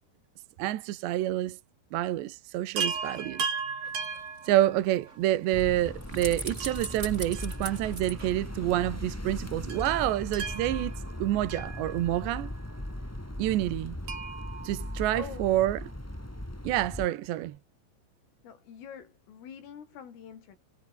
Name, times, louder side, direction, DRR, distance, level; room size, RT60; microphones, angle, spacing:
voice 1, 0.6-1.6 1.9-3.5 4.5-10.9 11.2-12.5 13.4-14.0 14.6-15.8 16.6-17.6, right 14 dB, 70° right, 3.3 m, -28 dB
Chime, 2.8-5.2 6.6-8.1 8.4-8.5 9.7-12.4 14.1-15.7 17.2-17.3 17.6-17.7, right 5 dB, 45° right, 6.5 m, -37 dB
sound 1, 3.8-9.2 9.5-9.6, right 2 dB, 15° right, 4.5 m, -43 dB
sound 2, 5.5-17.1, left 1 dB, 10° left, 0.8 m, -38 dB
voice 2, 15.1-15.5 18.4-20.6, left 8 dB, 85° left, 6.8 m, -45 dB
omnidirectional pair, 5.7 m